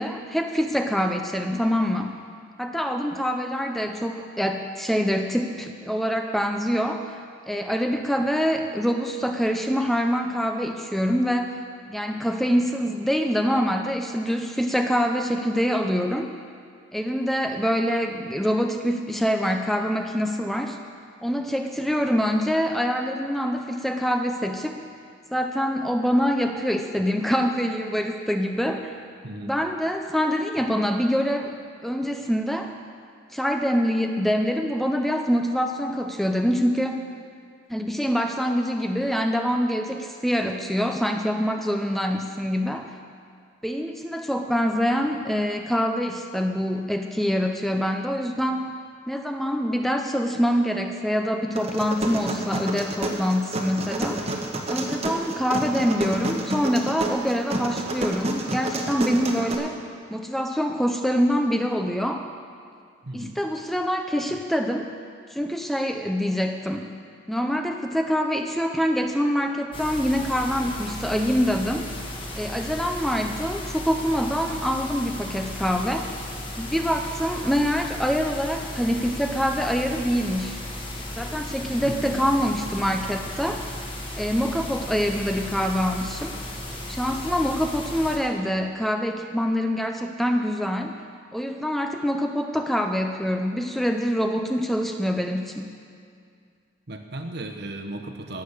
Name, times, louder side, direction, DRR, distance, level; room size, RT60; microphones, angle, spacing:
voice 1, 0.0-2.2 2.6-7.1 7.5-11.6 11.9-16.3 16.9-20.8 21.2-24.8 25.3-28.9 29.4-31.5 31.8-32.7 33.3-37.1 37.7-42.9 43.6-48.7 49.1-54.3 54.7-59.8 60.1-62.3 63.1-64.9 65.3-66.9 67.3-71.9 72.4-76.1 76.6-80.6 81.2-83.6 84.2-86.4 86.9-91.0 91.3-95.7, equal, ahead, 4 dB, 0.5 m, -25 dB
sound 1, 51.6-59.5, right 1 dB, 30° right, 1.2 m, -29 dB
voice 2, 63.0-63.4 81.8-82.3 96.9-98.4, right 1 dB, 55° right, 5 dB, 1.1 m, -35 dB
sound 2, 69.7-88.2, left 1 dB, 25° left, 1.5 m, -35 dB
17.0 x 7.3 x 6.6 m, 2.2 s
head